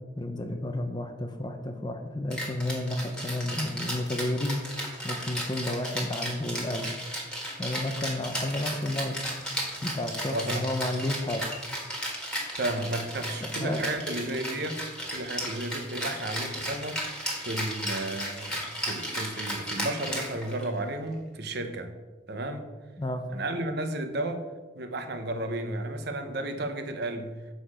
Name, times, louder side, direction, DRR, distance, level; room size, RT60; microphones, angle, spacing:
voice 1, 0.2-4.6 5.0-6.9 7.6-9.2 9.8-11.4 13.4-13.9 23.0-23.2, left 1 dB, 20° left, 6 dB, 0.6 m, -31 dB
Rattle (instrument), 2.3-20.8, equal, 5° left, 1.8 m, -34 dB
voice 2, 10.3-10.8 12.6-14.8 15.1-17.0 17.4-21.9 22.3-22.7 23.3-24.5 24.7-27.3, right 1 dB, 55° right, 7 dB, 0.9 m, -33 dB
8.0 x 6.4 x 4.9 m, 1.3 s
head